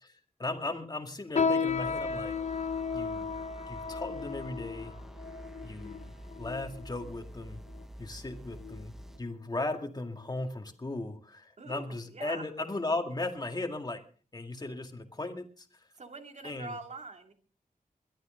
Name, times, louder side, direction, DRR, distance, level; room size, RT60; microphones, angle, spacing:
voice 1, 0.0-2.3 2.9-3.3 3.7-4.9 5.6-7.6 8.0-8.9 9.2-14.0 14.3-15.7 16.4-16.7, left 2 dB, 25° left, 4 dB, 2.1 m, -37 dB
sound 1, 1.4-7.0 7.7-7.8 8.6-8.9 9.3-9.4 10.1-10.2, left 5 dB, 50° left, 0.8 m, -34 dB
sound 2, 1.7-9.2, equal, ahead, 0.9 m, -47 dB
voice 2, 11.6-12.5 16.0-17.3, right 3 dB, 50° right, 4 dB, 2.5 m, -44 dB
22.0 x 13.0 x 3.8 m, 0.39 s
wide cardioid pair, 120°, 15 cm